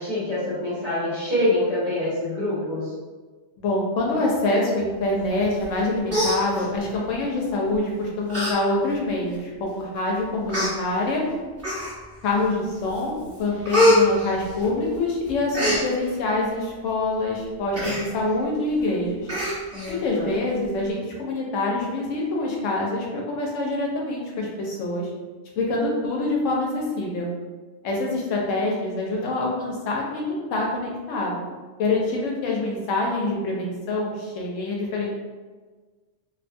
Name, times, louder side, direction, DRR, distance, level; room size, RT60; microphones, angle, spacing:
voice 1, 0.0-2.9 19.7-20.3, left 1 dB, 35° right, -10 dB, 1.1 m, -26 dB
voice 2, 3.6-11.2 12.2-19.3 19.9-25.1 25.6-27.3 27.8-31.4 31.8-35.1, left 2 dB, 80° left, -2 dB, 1.0 m, -25 dB
Human voice, 5.6-5.8 6.1-7.0 7.7-7.9 8.3-8.5 8.9-9.0 9.8-9.9 10.5-10.7 11.6-12.2 12.6-13.0 13.3-15.0 15.3-15.8 17.7-18.0 18.4-18.5 18.8-18.9 19.3-19.9 20.3-20.4, left 1 dB, 15° right, 1.0 m, -23 dB
2.7 x 2.3 x 2.5 m, 1.4 s
omnidirectional pair, 1.3 m